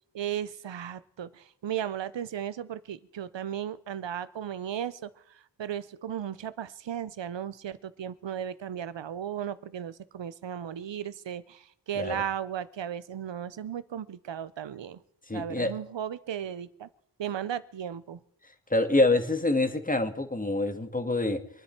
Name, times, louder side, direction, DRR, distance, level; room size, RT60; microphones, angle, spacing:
voice 1, 0.1-15.0 15.3-16.9 17.2-18.2, right 9 dB, 80° right, 16 dB, 0.8 m, -35 dB
voice 2, 11.9-12.2 15.3-15.7 18.7-21.4, left 2 dB, 20° left, 7 dB, 1.7 m, -26 dB
25.5 x 9.8 x 4.5 m, 0.69 s
wide cardioid pair, 65°, 43 cm